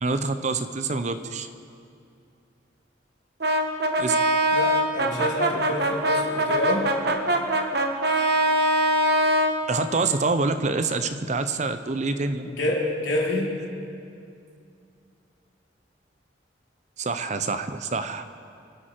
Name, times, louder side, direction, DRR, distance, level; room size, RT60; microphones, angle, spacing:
voice 1, 0.0-1.5 4.0-4.2 9.7-12.5 17.0-18.2, right 3 dB, 40° right, 10 dB, 0.6 m, -26 dB
Brass instrument, 3.4-9.6, right 1 dB, 60° right, 1.1 m, -22 dB
voice 2, 4.5-6.9 12.4-13.6, left 1 dB, 85° left, -2 dB, 2.9 m, -27 dB
25.5 x 8.9 x 4.5 m, 2.4 s
head